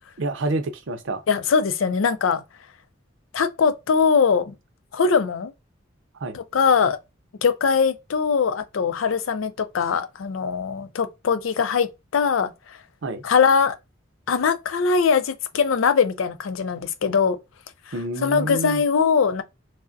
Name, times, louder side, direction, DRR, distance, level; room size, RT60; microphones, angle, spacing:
voice 1, 0.2-1.2 6.2-6.4 13.0-13.2 17.9-18.8, right 2 dB, 70° right, 0.5 m, -28 dB
voice 2, 1.3-2.4 3.3-4.5 4.9-5.5 6.3-7.0 7.4-12.8 13.2-13.7 14.3-17.4 18.2-19.4, left 5 dB, 85° left, 0.5 m, -21 dB
4.7 x 2.1 x 2.5 m
head